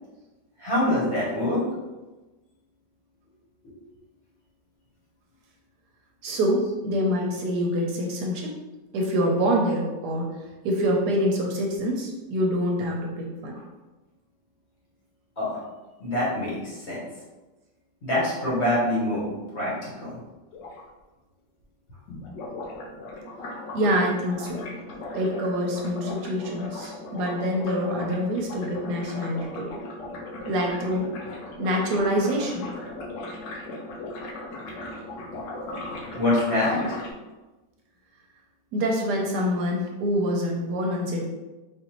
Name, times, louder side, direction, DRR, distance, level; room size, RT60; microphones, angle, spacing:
voice 1, 0.6-1.6 3.6-3.7 6.6-6.7 9.2-9.3 13.5-13.6 15.4-15.6 16.0-17.0 18.0-20.2 27.4-27.5 36.1-36.9, left 1 dB, 45° left, -7 dB, 1.2 m, -25 dB
voice 2, 6.2-8.5 8.9-10.4 10.6-13.5 23.7-24.6 25.1-29.7 30.4-31.1 31.6-32.7 38.7-41.3, equal, 75° right, 0 dB, 1.1 m, -26 dB
sound 1, 20.5-20.8 22.1-37.1, left 2 dB, 80° left, 1.3 m, -37 dB
4.1 x 2.6 x 2.9 m, 1.1 s
omnidirectional pair, 1.9 m